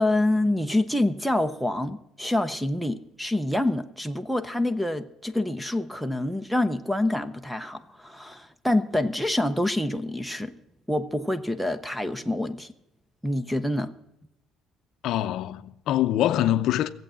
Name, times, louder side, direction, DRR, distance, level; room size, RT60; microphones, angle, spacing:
voice 1, 0.0-10.5 10.9-12.7 13.2-13.9, left 1 dB, ahead, 0.5 m, -26 dB
voice 2, 15.0-16.9, left 12 dB, 55° left, 0.5 m, -24 dB
16.5 x 8.0 x 7.4 m
cardioid pair, 165°, 0 cm